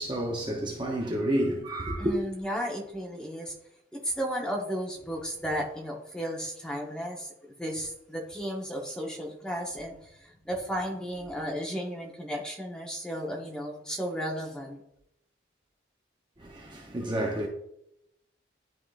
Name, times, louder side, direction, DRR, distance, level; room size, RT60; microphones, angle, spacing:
voice 1, 0.0-2.1 16.4-17.5, right 1 dB, 25° right, 0.7 m, -30 dB
voice 2, 2.0-3.5 3.9-7.3 7.6-14.8, equal, 5° left, 0.9 m, -34 dB
11.0 x 3.7 x 2.5 m
head